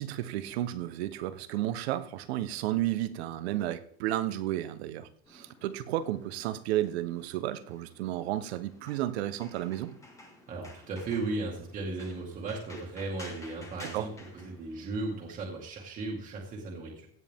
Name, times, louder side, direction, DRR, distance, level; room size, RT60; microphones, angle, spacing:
voice 1, 0.0-9.9 13.9-14.0, right 13 dB, 75° right, 1.2 m, -32 dB
sound 1, 5.3-15.3, left 2 dB, 10° left, 1.6 m, -53 dB
voice 2, 10.5-17.1, right 3 dB, 25° right, 2.2 m, -36 dB
16.5 x 9.6 x 3.7 m
cardioid pair, 180°, 32 cm